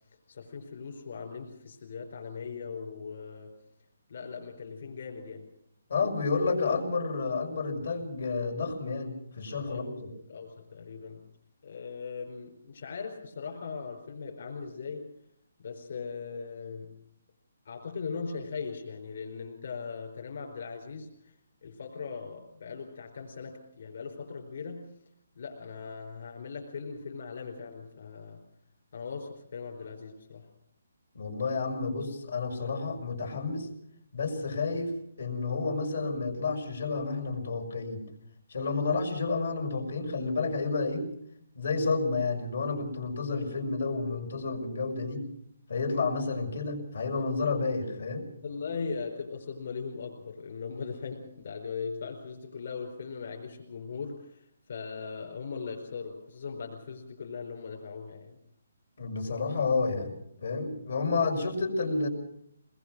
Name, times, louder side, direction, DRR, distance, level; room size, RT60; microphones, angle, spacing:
voice 1, 0.3-3.6 4.1-5.5 9.7-11.3 11.6-15.1 15.6-16.9 17.6-24.9 25.4-28.4 28.9-30.5 48.4-58.4, left 5 dB, 55° left, 1 dB, 4.6 m, -39 dB
voice 2, 5.9-10.1 31.1-33.7 34.1-34.9 35.2-38.0 38.5-41.1 41.6-45.3 45.7-48.2 59.0-62.1, left 4 dB, 75° left, 2 dB, 5.5 m, -30 dB
23.0 x 20.5 x 6.2 m, 0.71 s
hypercardioid pair, 170°, 0 cm